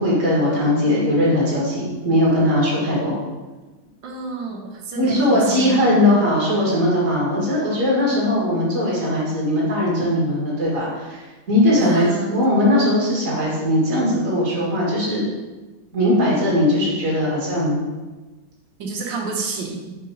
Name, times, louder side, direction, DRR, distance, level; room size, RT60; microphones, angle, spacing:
voice 1, 0.0-3.2 5.0-15.2 15.9-17.8, left 1 dB, 40° right, -5 dB, 2.4 m, -19 dB
voice 2, 4.0-6.0 11.8-12.5 18.8-20.0, right 3 dB, 65° right, 1 dB, 1.5 m, -29 dB
6.4 x 3.9 x 5.0 m, 1.2 s
omnidirectional pair, 2.3 m